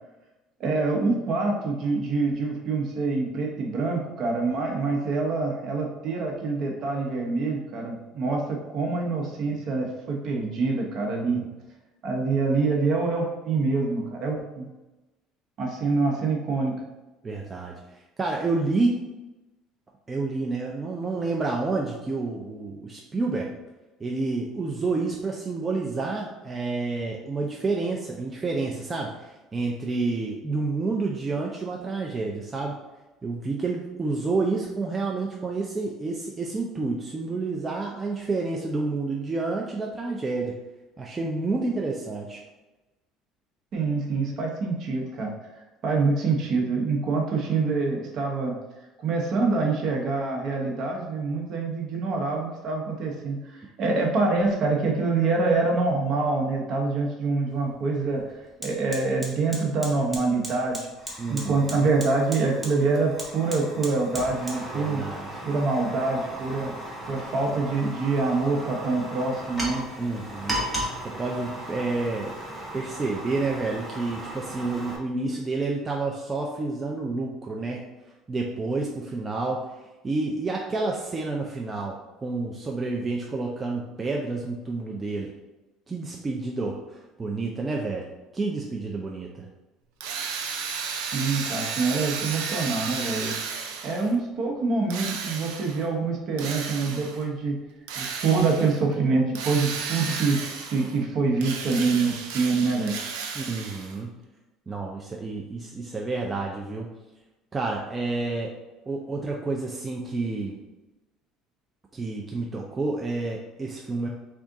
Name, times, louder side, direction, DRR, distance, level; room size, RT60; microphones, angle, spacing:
voice 1, 0.6-11.4 12.0-14.7 15.6-16.7 43.7-45.3 45.8-48.5 49.0-53.4 53.8-58.2 58.6-60.9 61.3-65.0 65.4-66.7 67.1-69.8 91.1-93.4 93.8-97.6 98.0-100.4 100.7-102.9, right 3 dB, 50° right, 0 dB, 0.9 m, -25 dB
voice 2, 17.2-17.7 18.2-19.0 20.1-23.5 24.0-32.8 33.2-40.5 41.0-42.4 61.2-61.9 64.7-65.3 70.0-70.8 71.0-72.3 72.7-77.9 78.3-79.6 80.0-85.3 85.9-88.1 88.3-89.5 103.3-104.2 104.7-106.9 107.5-108.5 108.9-110.6 111.9-114.1, right 3 dB, 25° right, -1 dB, 0.4 m, -29 dB
Fire, 57.5-57.6 58.0-75.0, right 1 dB, 5° right, 1.0 m, -36 dB
Drill, 90.0-94.1 94.9-95.9 96.4-97.2 97.9-98.8 99.3-101.0 101.4-104.0, right 6 dB, 80° right, 0.5 m, -33 dB
3.7 x 2.4 x 3.6 m, 1.1 s
supercardioid pair, 100°, 0 cm